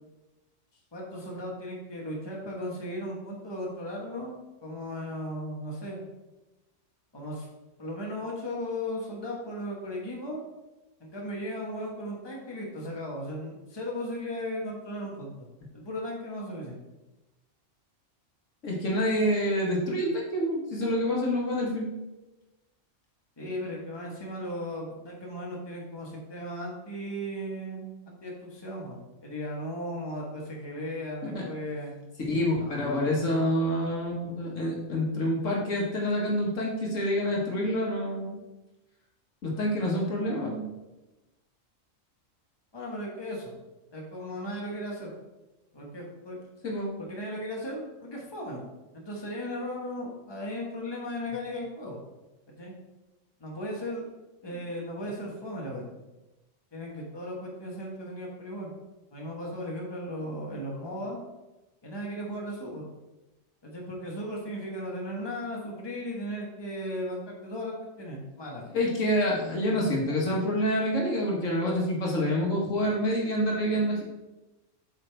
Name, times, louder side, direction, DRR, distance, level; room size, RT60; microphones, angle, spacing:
voice 1, 0.9-4.3 4.6-6.0 7.1-7.5 7.8-10.4 11.0-15.5 15.7-16.8 23.4-31.9 32.6-33.1 42.7-43.5 43.9-45.1 45.7-46.4 47.0-48.6 48.9-52.0 52.5-52.7 53.4-54.0 54.4-55.8 56.7-58.7 59.1-61.2 61.8-62.8 63.6-68.7 69.7-69.8, equal, 20° left, -2 dB, 1.3 m, -36 dB
voice 2, 18.6-21.9 31.2-31.5 32.3-38.4 39.4-40.7 46.6-46.9 60.4-60.6 68.7-74.0, equal, 75° left, -2 dB, 1.9 m, -27 dB
7.9 x 5.6 x 3.4 m, 1.0 s
omnidirectional pair, 1.3 m